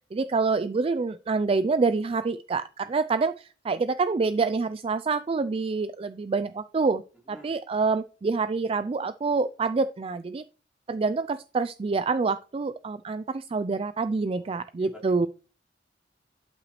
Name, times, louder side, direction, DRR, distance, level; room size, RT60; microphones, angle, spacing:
voice 1, 0.1-7.0 7.3-10.4 10.9-15.3, right 4 dB, 30° right, 13 dB, 0.3 m, -27 dB
voice 2, 14.4-15.3, equal, 5° right, -2 dB, 3.1 m, -50 dB
12.0 x 5.8 x 3.1 m, 0.35 s
head